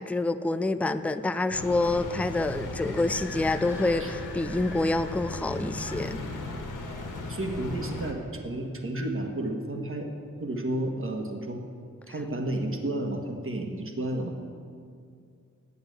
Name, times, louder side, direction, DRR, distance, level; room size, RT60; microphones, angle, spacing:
voice 1, 0.0-6.2, left 2 dB, 5° left, 11 dB, 0.4 m, -27 dB
sound 1, 1.5-8.1, left 2 dB, 85° left, 1.5 m, -37 dB
sound 2, 1.9-9.3, left 2 dB, 35° left, 0.8 m, -46 dB
voice 2, 7.3-10.1 10.4-11.6 12.1-14.4, right 1 dB, 45° right, 3 dB, 1.4 m, -31 dB
9.6 x 7.9 x 7.9 m, 2.3 s
wide cardioid pair, 95°, 31 cm